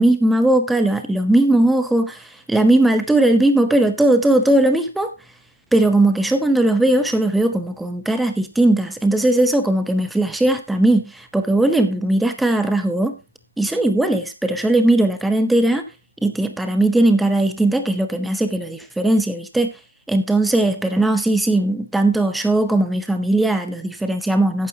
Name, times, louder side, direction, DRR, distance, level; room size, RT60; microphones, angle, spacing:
voice 1, 0.0-5.1 5.7-13.2 13.6-15.9 16.2-19.7 20.1-24.7, right 1 dB, 5° right, 0.7 m, -18 dB
12.5 x 9.3 x 2.8 m
figure-of-eight pair, 145°, 0 cm